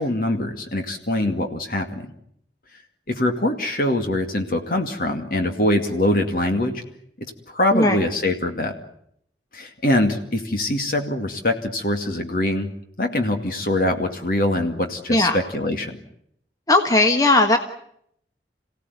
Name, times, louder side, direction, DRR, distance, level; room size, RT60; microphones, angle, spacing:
voice 1, 0.0-2.1 3.1-6.8 7.2-8.7 9.5-12.7 13.0-16.0, left 1 dB, 50° left, 4 dB, 2.3 m, -23 dB
voice 2, 16.7-17.6, left 2 dB, 20° left, 5 dB, 1.4 m, -17 dB
28.0 x 17.0 x 9.6 m, 0.72 s
head